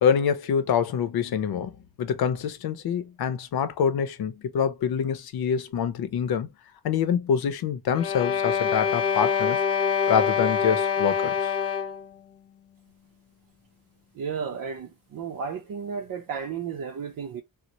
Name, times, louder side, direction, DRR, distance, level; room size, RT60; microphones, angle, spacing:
voice 1, 0.0-1.7 2.0-6.5 6.8-9.6 10.1-11.5, left 7 dB, 80° left, 0.7 m, -25 dB
sound 1, 7.9-12.1, left 7 dB, 40° left, 0.5 m, -25 dB
voice 2, 14.1-17.4, right 6 dB, 60° right, 0.6 m, -33 dB
3.9 x 2.1 x 2.8 m
wide cardioid pair, 130°, 36 cm